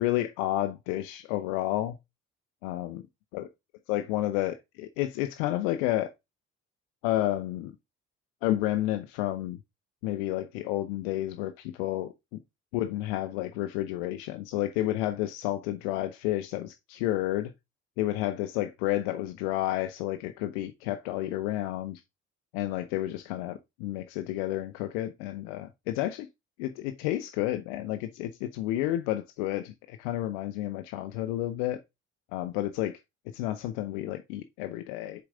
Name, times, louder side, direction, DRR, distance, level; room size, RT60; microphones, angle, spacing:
voice 1, 0.0-2.0 2.6-3.0 3.3-3.5 3.9-6.1 7.0-7.7 8.4-9.6 10.0-12.1 12.7-17.5 18.0-22.0 22.5-26.3 26.6-31.8 32.3-33.0 33.3-35.2, left 14 dB, 85° left, 0.6 m, -30 dB
6.8 x 4.7 x 3.7 m
hypercardioid pair, 55°, 32 cm